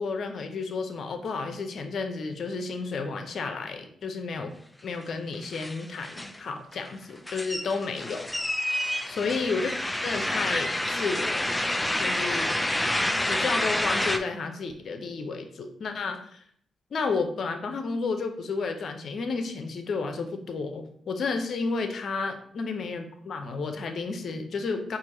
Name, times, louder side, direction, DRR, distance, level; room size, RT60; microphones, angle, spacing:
voice 1, 0.0-4.5 4.8-8.2 9.1-9.7 10.0-11.6 12.0-12.5 13.3-16.4 16.9-25.0, left 4 dB, 65° left, 6 dB, 0.6 m, -31 dB
sound 1, 5.0-5.1 5.3-6.4 6.7-14.2, left 1 dB, 15° left, 0.4 m, -28 dB
4.6 x 2.5 x 4.1 m, 0.64 s
supercardioid pair, 55°, 0 cm